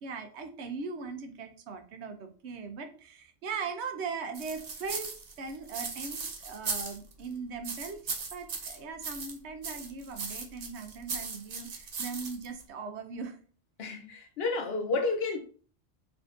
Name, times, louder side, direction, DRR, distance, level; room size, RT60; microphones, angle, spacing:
voice 1, 0.0-5.1 5.4-13.4, right 5 dB, 85° right, 1.0 m, -39 dB
sound 1, 4.3-7.3 7.6-9.4 9.6-12.6, right 5 dB, 45° right, 0.6 m, -38 dB
voice 2, 13.8-15.4, left 3 dB, 70° left, 0.9 m, -31 dB
3.6 x 3.4 x 2.5 m
omnidirectional pair, 1.1 m